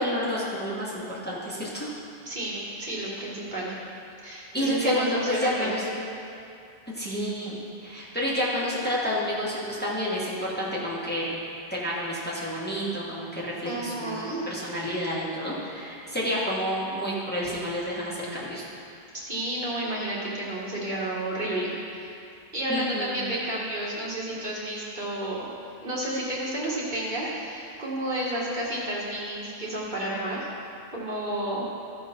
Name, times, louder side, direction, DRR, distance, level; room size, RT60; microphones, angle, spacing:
voice 1, 0.0-1.9 4.5-5.9 6.9-11.3 11.7-14.2 14.5-18.6 22.7-23.2, equal, 10° left, -7 dB, 1.7 m, -29 dB
voice 2, 2.3-3.7 4.2-5.8 13.6-14.5 19.1-22.2 22.5-25.5 25.8-30.5 30.9-31.7, right 1 dB, 45° right, -6 dB, 2.0 m, -31 dB
14.5 x 5.2 x 5.4 m, 2.6 s
omnidirectional pair, 1.1 m